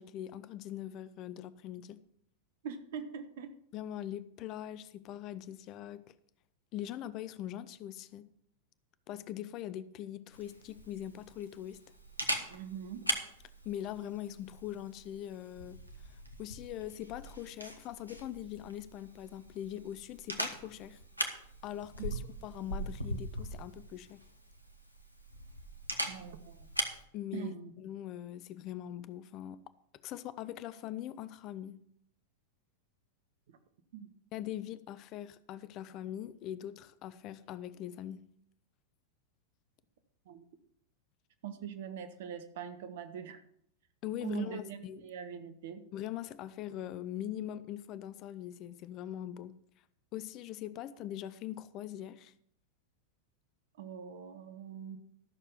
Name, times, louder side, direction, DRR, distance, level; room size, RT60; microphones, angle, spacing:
voice 1, 0.0-2.0 3.7-6.1 6.7-8.3 9.1-11.8 13.6-15.8 16.1-21.0 21.6-24.2 27.1-29.6 30.0-31.8 34.3-38.3 44.0-45.0 45.9-49.5 50.1-52.3, left 12 dB, 40° left, 0.5 m, -42 dB
voice 2, 2.6-3.5 12.5-13.1 26.0-26.7 27.3-27.7 33.5-33.6 33.9-34.1 40.2-40.4 41.4-43.4 44.2-45.8 53.8-55.0, right 8 dB, 55° right, 1.2 m, -42 dB
Camera, 10.3-27.0, equal, 90° left, 1.2 m, -41 dB
13.0 x 6.8 x 5.6 m
figure-of-eight pair, 90°, 0 cm